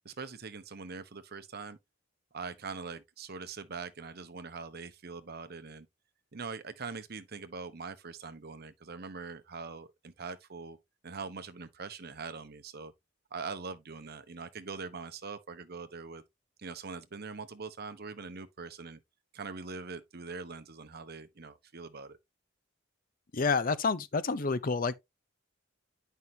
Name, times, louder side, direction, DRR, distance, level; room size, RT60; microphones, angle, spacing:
voice 1, 0.0-1.8 2.3-5.9 6.3-10.8 11.0-12.9 13.3-16.2 16.6-19.0 19.3-22.2, right 4 dB, 50° right, 0.8 m, -42 dB
voice 2, 23.3-25.0, left 4 dB, 45° left, 0.6 m, -29 dB
9.4 x 5.5 x 2.7 m
head